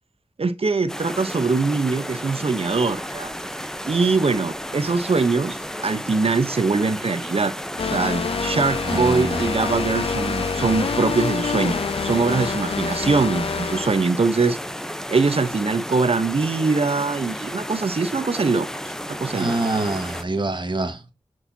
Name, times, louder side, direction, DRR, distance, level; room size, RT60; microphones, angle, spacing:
voice 1, 0.4-3.3 3.9-7.5 7.8-14.6 15.1-19.6, right 4 dB, 65° right, 0.9 m, -22 dB
sound 1, 0.9-20.2, equal, 5° left, 0.8 m, -33 dB
sound 2, 7.8-14.1, left 5 dB, 60° left, 0.4 m, -26 dB
voice 2, 8.8-9.5 19.3-21.1, right 2 dB, 45° right, 1.6 m, -26 dB
6.5 x 6.4 x 2.8 m
wide cardioid pair, 55°, 11 cm